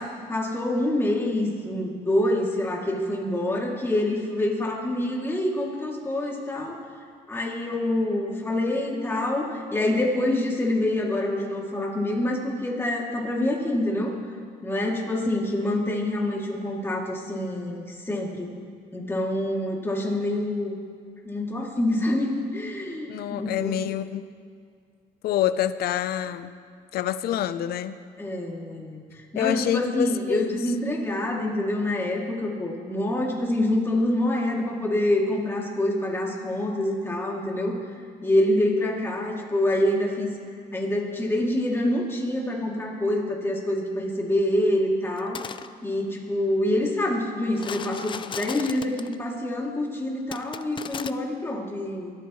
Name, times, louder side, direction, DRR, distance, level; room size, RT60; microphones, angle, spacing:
voice 1, 0.0-6.8 7.3-14.1 14.6-18.6 18.9-20.7 21.2-24.0 28.2-37.8 38.2-40.3 40.7-45.4 45.8-52.1, left 1 dB, 15° left, -2 dB, 2.7 m, -26 dB
voice 2, 23.1-24.2 25.2-26.5 26.9-27.9 29.4-30.6, left 11 dB, 65° left, 13 dB, 0.7 m, -27 dB
sound 1, 45.2-45.7 47.5-49.2 50.3-51.1, left 7 dB, 30° left, 0.5 m, -36 dB
23.0 x 13.5 x 3.2 m, 2.1 s
cardioid pair, 110°, 17 cm